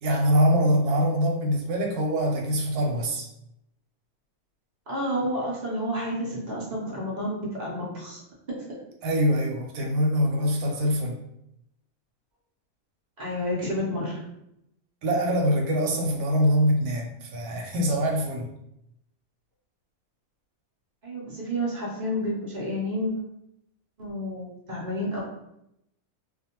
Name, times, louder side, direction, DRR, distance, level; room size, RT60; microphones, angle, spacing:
voice 1, 0.0-3.3 9.0-11.2 15.0-18.5, equal, 85° right, 1 dB, 1.1 m, -24 dB
voice 2, 4.9-8.2 13.2-14.2 21.0-23.1 24.0-25.2, equal, 40° right, -5 dB, 0.7 m, -30 dB
2.4 x 2.3 x 2.8 m, 0.82 s
omnidirectional pair, 1.5 m